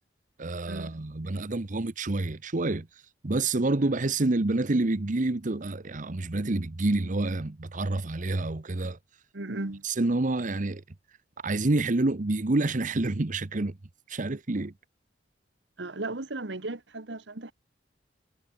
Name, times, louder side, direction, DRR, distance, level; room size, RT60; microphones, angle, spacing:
voice 1, 0.4-9.0 9.8-10.8 11.4-13.8 14.1-14.7, right 2 dB, 45° right, 0.9 m, -28 dB
voice 2, 9.3-9.8 15.8-17.5, right 2 dB, 70° right, 1.5 m, -35 dB
head